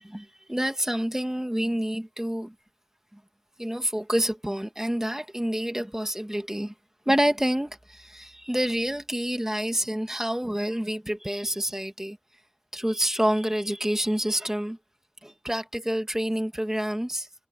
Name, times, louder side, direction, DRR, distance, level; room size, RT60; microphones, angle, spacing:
voice 1, 0.0-2.5 3.1-3.2 3.6-6.7 7.1-12.2 12.7-14.8 15.2-17.3, equal, 15° right, 2.1 m, -28 dB
wide cardioid pair, 50°, 3 cm